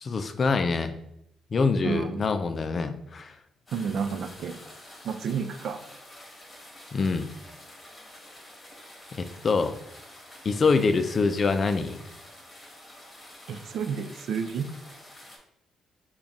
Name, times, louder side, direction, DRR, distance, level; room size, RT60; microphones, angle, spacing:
voice 1, 0.0-0.9 1.5-3.3 6.9-7.3 9.2-9.7 10.4-12.0, left 4 dB, 40° left, 9 dB, 0.3 m, -25 dB
voice 2, 1.8-2.2 3.7-4.6 5.0-5.8 13.5-14.7, right 6 dB, 70° right, 8 dB, 0.3 m, -31 dB
sound 1, 3.7-15.4, left 1 dB, 25° left, 1.0 m, -48 dB
3.9 x 2.3 x 3.5 m, 0.78 s
cardioid pair, 90°, 0 cm